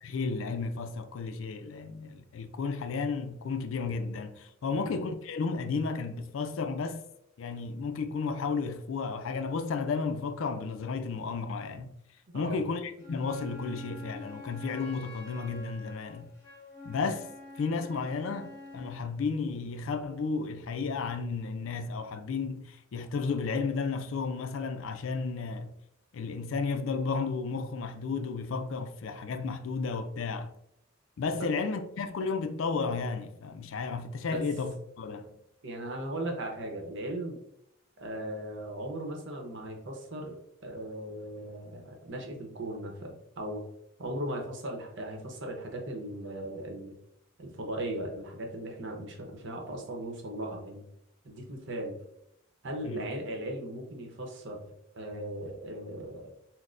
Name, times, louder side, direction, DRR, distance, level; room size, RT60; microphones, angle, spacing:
voice 1, 0.0-7.0 7.4-12.0 12.3-16.3 16.8-25.8 26.1-30.5 31.2-35.4 52.8-53.1, left 4 dB, 70° left, 0.4 m, -33 dB
Wind instrument woodwind instrument, 13.0-19.0, left 3 dB, 20° left, 1.4 m, -47 dB
voice 2, 35.6-37.4 38.0-40.4 40.6-43.6 44.0-47.0 47.4-50.8 51.2-52.0 52.6-56.3, right 1 dB, 65° right, 0.8 m, -38 dB
6.0 x 2.1 x 2.5 m
head